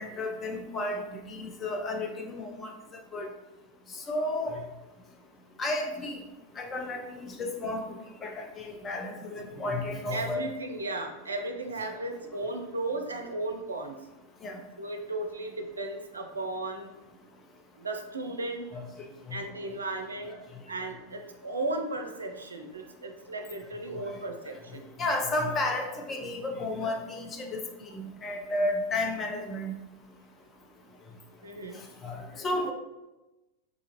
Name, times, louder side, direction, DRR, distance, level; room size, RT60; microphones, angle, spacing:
voice 1, 0.0-3.3 3.9-4.6 5.6-6.2 6.6-7.9 8.2-10.4 11.9-12.0 14.4-14.6 18.7-19.4 20.2-20.4 24.0-24.2 25.0-27.6 27.9-29.7 32.0-32.7, left 2 dB, 25° left, 3 dB, 0.5 m, -32 dB
voice 2, 10.1-14.0 14.8-16.9 17.8-18.7 19.3-20.3 20.7-24.8 31.4-31.8, right 2 dB, 75° right, 4 dB, 0.4 m, -35 dB
3.9 x 2.4 x 2.9 m, 1.0 s
figure-of-eight pair, 90°, 0 cm